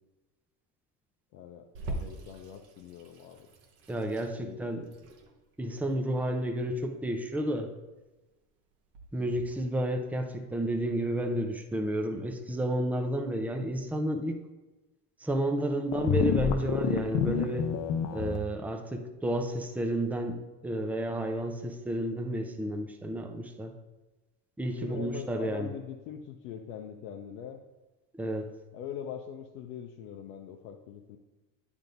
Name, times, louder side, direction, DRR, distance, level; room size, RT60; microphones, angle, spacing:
voice 1, 1.3-3.5 4.4-4.9 9.2-9.4 24.7-27.6 28.7-31.2, left 8 dB, 80° left, 2 dB, 0.7 m, -43 dB
Water tap faucet / Sink (filling or washing), 1.7-10.7, right 1 dB, 70° right, 1.2 m, -45 dB
voice 2, 3.9-4.8 5.6-7.7 9.1-14.4 15.2-17.7 18.1-23.7 24.6-25.7 28.2-28.5, right 1 dB, 5° right, 4 dB, 0.6 m, -31 dB
sound 1, 15.9-18.4, left 8 dB, 45° left, 0.7 m, -29 dB
8.8 x 3.6 x 3.9 m, 1.1 s
hypercardioid pair, 75°, 46 cm